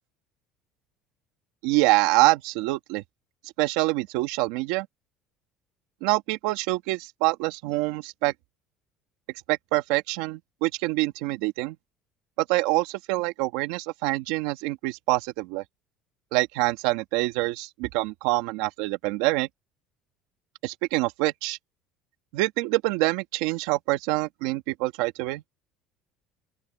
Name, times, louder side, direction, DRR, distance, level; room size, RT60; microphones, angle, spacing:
voice 1, 1.6-3.0 3.6-4.9 6.0-8.3 9.5-11.8 12.4-15.6 16.3-19.5 20.6-21.6 22.3-25.4, right 20 dB, 85° right, 2.1 m, -25 dB
open air
cardioid pair, 130°, 0 cm